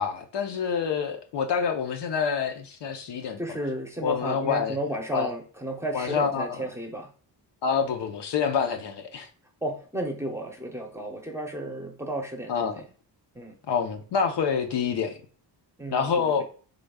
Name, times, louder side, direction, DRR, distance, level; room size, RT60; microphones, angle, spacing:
voice 1, 0.0-3.4 4.0-4.8 5.1-5.3 5.9-6.6 7.6-9.3 12.5-12.7 13.7-15.2 15.9-16.4, left 6 dB, 70° left, 0.9 m, -27 dB
voice 2, 3.4-7.1 9.6-12.9 13.3-13.6 15.8-16.4, right 1 dB, 5° right, 0.7 m, -33 dB
5.1 x 3.8 x 2.3 m
cardioid pair, 120°, 43 cm